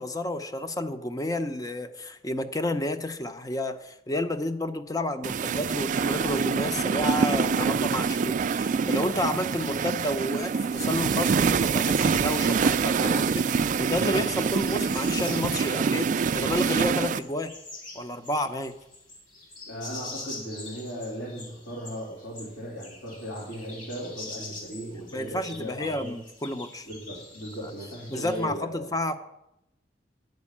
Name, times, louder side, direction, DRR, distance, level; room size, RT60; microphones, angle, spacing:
voice 1, 0.0-17.5 17.9-18.7 25.1-26.9 27.6-27.7 28.1-29.1, left 1 dB, 20° left, 9 dB, 0.7 m, -30 dB
sound 1, 5.2-17.2, right 5 dB, 45° right, 0.3 m, -25 dB
sound 2, 10.3-28.4, left 2 dB, 50° left, 3.1 m, -45 dB
voice 2, 19.7-26.1 26.8-28.9, equal, 75° left, -7 dB, 3.2 m, -37 dB
10.5 x 5.3 x 8.5 m, 0.85 s
head